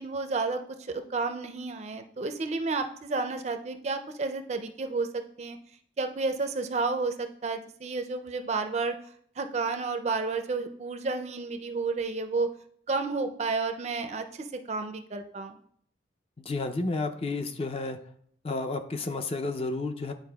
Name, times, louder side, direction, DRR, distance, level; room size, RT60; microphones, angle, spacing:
voice 1, 0.0-5.6 6.0-8.9 9.4-12.5 12.9-15.6, right 3 dB, 35° right, 7 dB, 0.4 m, -31 dB
voice 2, 16.5-18.0 18.4-20.1, left 3 dB, 30° left, 7 dB, 0.4 m, -31 dB
10.5 x 4.3 x 2.3 m, 0.64 s
head